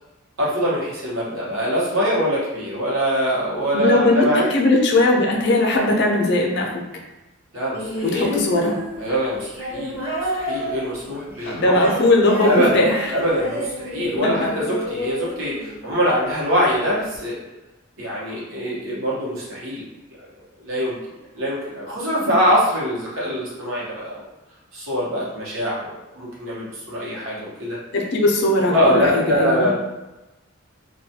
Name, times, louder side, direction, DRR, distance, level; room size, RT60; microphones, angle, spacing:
voice 1, 0.4-4.5 7.5-8.3 9.0-10.0 10.3-11.8 12.4-12.8 13.1-17.4 18.0-19.8 20.6-24.2 24.7-27.8 28.7-29.7, equal, 70° right, -6 dB, 0.9 m, -23 dB
voice 2, 3.7-4.2 4.5-6.8 8.0-8.8 11.4-13.1 14.2-14.5 22.2-22.3 27.9-29.7, left 2 dB, 55° left, 0 dB, 0.4 m, -19 dB
sound 1, 7.7-16.1 17.1-17.2, equal, 10° right, 0.6 m, -29 dB
2.3 x 2.2 x 2.7 m, 1.0 s
head